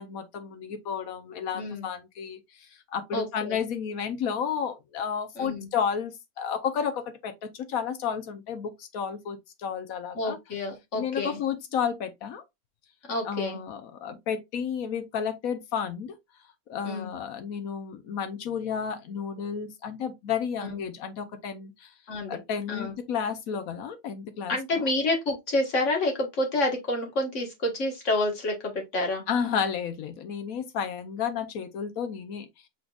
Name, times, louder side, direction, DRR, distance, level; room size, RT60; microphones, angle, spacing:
voice 1, 0.0-2.4 2.9-10.4 10.9-12.4 13.2-16.1 16.7-21.9 22.3-24.9 29.3-32.5, left 7 dB, 70° left, 1.1 m, -32 dB
voice 2, 1.5-1.9 3.1-3.6 5.3-5.7 10.1-11.4 13.1-13.6 16.8-17.1 20.6-20.7 22.1-22.4 22.7-22.9 24.5-29.2, left 2 dB, 50° left, 1.7 m, -28 dB
6.0 x 3.7 x 2.3 m
omnidirectional pair, 1.7 m